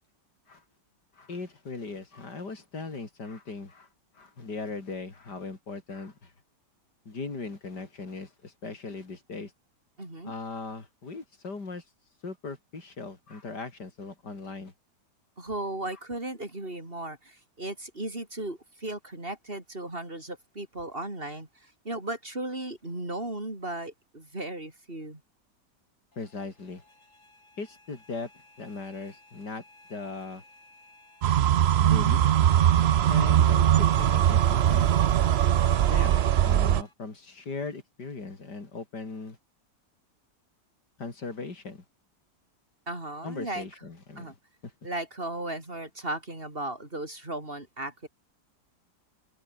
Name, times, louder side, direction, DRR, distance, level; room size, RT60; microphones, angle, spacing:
voice 1, 1.1-3.9 4.1-6.3 7.1-9.5 10.2-11.8 12.2-14.7 26.2-26.8 27.6-28.3 28.6-29.6 29.9-30.4 31.8-32.3 33.1-34.9 35.9-39.4 41.0-41.8 43.2-44.3 44.6-44.7, left 3 dB, 70° left, 4.5 m, -38 dB
voice 2, 10.0-10.3 15.4-25.2 42.9-43.7 44.2-44.3 44.8-48.1, right 1 dB, 30° right, 6.0 m, -36 dB
sound 1, 26.1-36.9, left 2 dB, 45° left, 5.8 m, -54 dB
sound 2, 31.2-36.8, right 11 dB, 80° right, 0.5 m, -21 dB
omnidirectional pair, 1.8 m